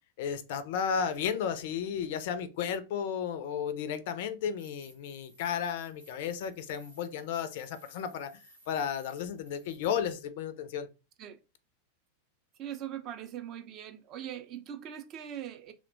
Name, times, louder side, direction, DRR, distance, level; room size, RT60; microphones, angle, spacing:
voice 1, 0.2-8.4 8.7-10.9, left 7 dB, 50° left, 0.4 m, -33 dB
sound 1, 4.6-10.2, right 1 dB, 85° right, 0.9 m, -59 dB
voice 2, 12.6-15.7, right 10 dB, 35° right, 0.4 m, -41 dB
2.8 x 2.1 x 2.5 m
figure-of-eight pair, 90°, 0 cm